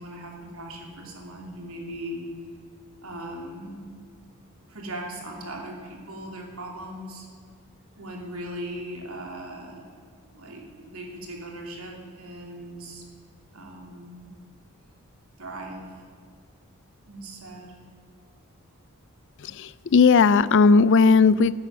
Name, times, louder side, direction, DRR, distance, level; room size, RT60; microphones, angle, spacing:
voice 1, 0.0-2.3 3.0-3.9 4.7-7.3 8.0-9.8 10.3-13.0 13.5-14.3 15.4-15.9 17.1-17.7, right 1 dB, 80° right, 0 dB, 2.8 m, -38 dB
voice 2, 19.4-21.5, left 4 dB, 55° left, 18 dB, 0.4 m, -17 dB
14.5 x 9.7 x 7.2 m, 2.2 s
head